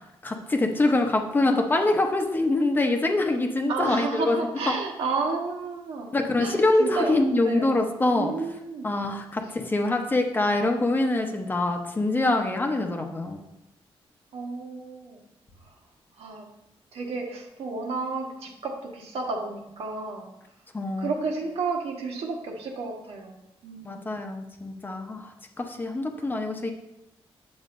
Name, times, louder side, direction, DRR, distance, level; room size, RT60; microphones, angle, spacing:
voice 1, 0.2-4.4 4.7-4.8 6.1-8.3 8.8-13.4 20.7-21.1 23.8-25.3 25.6-26.7, left 2 dB, 20° left, 4 dB, 0.8 m, -24 dB
voice 2, 3.7-6.1 6.4-7.8 8.1-8.9 14.3-15.2 15.6-15.7 16.2-16.4 16.9-20.3 21.0-24.2, right 4 dB, 85° right, 0 dB, 1.4 m, -32 dB
9.1 x 7.0 x 2.6 m, 0.89 s
wide cardioid pair, 145°, 10 cm